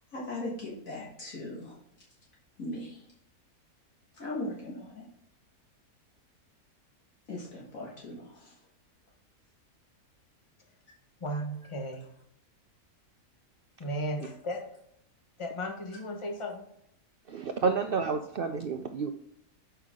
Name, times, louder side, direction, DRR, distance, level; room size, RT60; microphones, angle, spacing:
voice 1, 0.1-1.7 2.6-3.0 4.2-5.0 7.3-8.5, left 1 dB, 65° left, 2.0 m, -38 dB
voice 2, 11.2-12.0 13.8-14.6 15.4-16.7, equal, 25° left, 1.0 m, -35 dB
voice 3, 17.3-19.1, right 5 dB, 80° right, 0.5 m, -30 dB
7.0 x 5.7 x 3.7 m
omnidirectional pair, 1.6 m